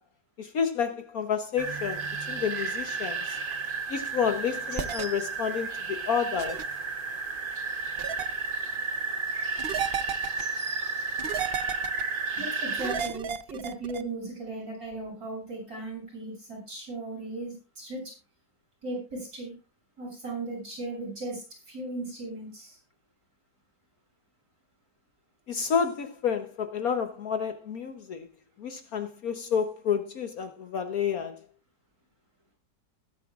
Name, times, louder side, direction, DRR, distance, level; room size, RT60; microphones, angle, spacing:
voice 1, 0.5-2.0 2.3-3.2 3.9-5.7 6.1-6.6 25.5-28.2 28.6-31.3, left 7 dB, 60° left, 1.3 m, -29 dB
sound 1, 1.6-13.0, right 4 dB, 35° right, 0.9 m, -32 dB
sound 2, 4.8-5.0 6.4-6.6 8.0-8.3 9.6-10.4 11.2-12.0 12.8-14.0, right 8 dB, 70° right, 0.5 m, -33 dB
voice 2, 12.4-18.0 18.8-19.5 20.0-21.4 21.7-22.8, right 2 dB, 55° right, 7.8 m, -37 dB
20.0 x 9.8 x 2.4 m
omnidirectional pair, 1.9 m